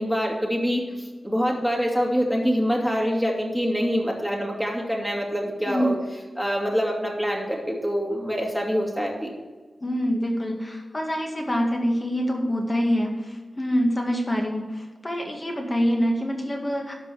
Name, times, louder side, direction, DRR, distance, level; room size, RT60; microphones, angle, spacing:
voice 1, 0.0-6.0 6.4-9.3, equal, ahead, -1 dB, 2.4 m, -25 dB
voice 2, 9.8-16.9, equal, 25° left, 1 dB, 2.1 m, -25 dB
12.0 x 5.5 x 6.9 m, 1.3 s
wide cardioid pair, 105°, 0 cm